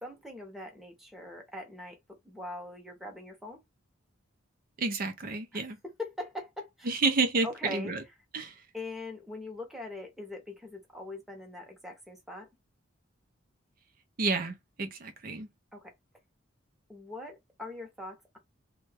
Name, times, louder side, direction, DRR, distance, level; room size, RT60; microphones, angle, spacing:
voice 1, 0.0-3.6 5.5-5.7 6.0-6.9 7.4-7.9 8.7-12.5 15.7-15.9 16.9-18.4, left 2 dB, ahead, 0.8 m, -42 dB
voice 2, 4.8-5.8 6.9-8.0 8.3-8.5 14.2-15.5, right 3 dB, 45° right, 0.5 m, -30 dB
3.1 x 2.3 x 3.3 m
head